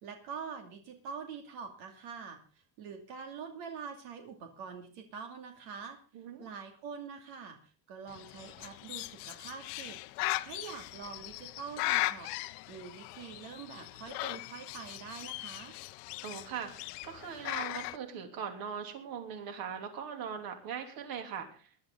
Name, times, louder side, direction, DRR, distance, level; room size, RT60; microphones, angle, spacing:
voice 1, 0.0-6.0 6.4-12.3 12.7-15.7, right 6 dB, 75° right, 5 dB, 2.6 m, -45 dB
voice 2, 6.1-6.5 16.2-21.7, right 7 dB, 50° right, 5 dB, 3.1 m, -40 dB
Bird, 8.1-18.0, left 20 dB, 85° left, 0.9 m, -38 dB
20.5 x 11.5 x 3.8 m, 0.37 s
cardioid pair, 145°, 45 cm